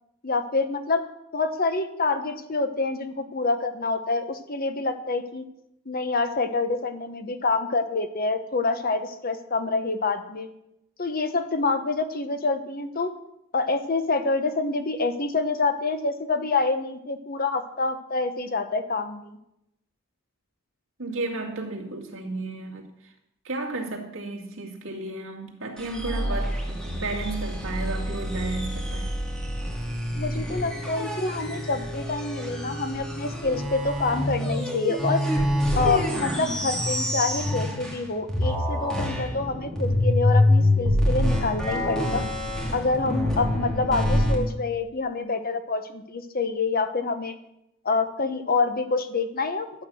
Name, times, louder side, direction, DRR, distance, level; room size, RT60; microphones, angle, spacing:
voice 1, 0.2-1.0 1.3-5.5 5.9-10.5 11.0-13.1 13.5-19.4 30.1-35.2 35.7-42.2 42.7-47.3 47.8-49.7, left 3 dB, 45° left, 1.0 m, -27 dB
voice 2, 21.0-22.8 23.4-29.1, right 2 dB, 70° right, 2.1 m, -33 dB
sound 1, 25.8-38.0 38.3-44.3, left 1 dB, 5° left, 2.6 m, -26 dB
12.0 x 8.3 x 6.2 m
head